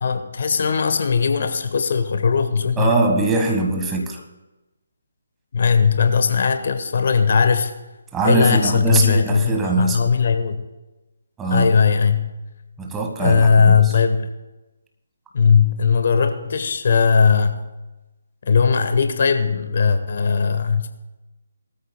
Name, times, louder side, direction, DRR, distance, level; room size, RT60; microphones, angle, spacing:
voice 1, 0.0-2.9 5.5-7.7 8.2-10.7 11.5-12.3 13.2-14.3 15.3-17.6 18.4-20.9, left 5 dB, 45° left, 9 dB, 1.0 m, -18 dB
voice 2, 2.8-4.2 8.1-10.1 11.4-11.8 12.8-13.9, right 3 dB, 10° right, 1 dB, 1.4 m, -22 dB
20.0 x 13.5 x 2.2 m, 1.1 s
figure-of-eight pair, 145°, 0 cm